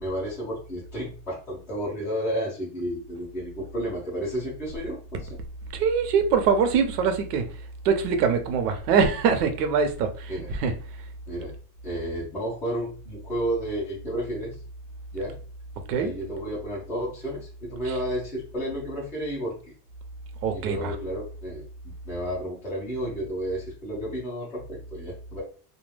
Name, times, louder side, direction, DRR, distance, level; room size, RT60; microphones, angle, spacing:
voice 1, 0.0-5.2 10.3-10.5 11.3-11.5 11.8-14.6 15.1-15.3 16.0-19.5 20.5-25.4, equal, 5° left, 0.3 m, -32 dB
voice 2, 5.7-11.1 15.9-16.1 17.8-18.0 20.4-21.0, right 6 dB, 85° right, 0.7 m, -24 dB
2.2 x 2.2 x 3.2 m
supercardioid pair, 175°, 46 cm